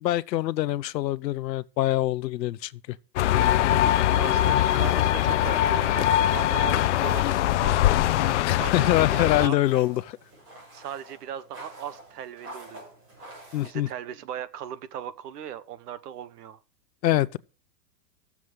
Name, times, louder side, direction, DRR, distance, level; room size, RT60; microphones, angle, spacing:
voice 1, 0.0-3.0 8.4-10.2 13.5-13.9 17.0-17.4, left 14 dB, 85° left, 0.8 m, -25 dB
sound 1, 3.2-9.5, left 13 dB, 50° left, 0.5 m, -22 dB
voice 2, 4.1-7.8 8.5-9.6 10.7-12.8 13.6-16.6, right 9 dB, 70° right, 1.2 m, -38 dB
sound 2, 8.0-13.7, right 1 dB, 25° right, 6.2 m, -46 dB
16.0 x 7.3 x 4.9 m
supercardioid pair, 160°, 49 cm